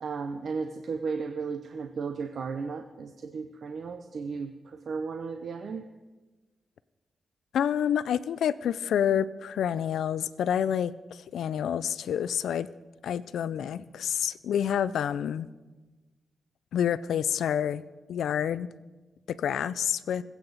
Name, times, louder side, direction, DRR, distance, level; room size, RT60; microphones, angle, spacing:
voice 1, 0.0-5.9, right 5 dB, 70° right, 7 dB, 0.7 m, -35 dB
voice 2, 7.5-12.7 13.0-15.5 16.7-17.8 18.1-18.7 19.4-20.2, left 9 dB, 90° left, 17 dB, 0.4 m, -28 dB
21.5 x 8.5 x 4.0 m, 1.2 s
cardioid pair, 60°, 0 cm